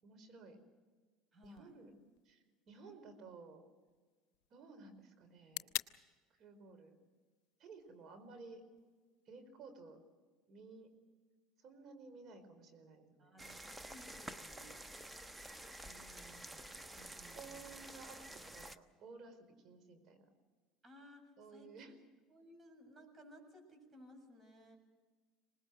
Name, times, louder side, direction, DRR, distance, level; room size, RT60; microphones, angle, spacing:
voice 1, 0.0-0.6 1.4-1.9 2.2-3.6 4.5-5.7 6.4-6.9 7.6-8.6 9.3-10.0 10.5-10.9 11.6-13.4 15.9-16.7 17.3-19.4 19.6-20.3 21.4-21.9, right 4 dB, 50° right, 7 dB, 4.8 m, -55 dB
voice 2, 1.3-1.7 13.2-14.8 16.9-17.7 20.8-22.0 22.3-24.8, equal, 25° right, 4 dB, 7.4 m, -59 dB
sound 1, 1.4-9.4, left 16 dB, 70° left, 0.7 m, -51 dB
sound 2, 13.4-18.8, right 1 dB, 10° right, 1.1 m, -50 dB
25.5 x 20.0 x 6.5 m, 1.4 s
hypercardioid pair, 85°, 0 cm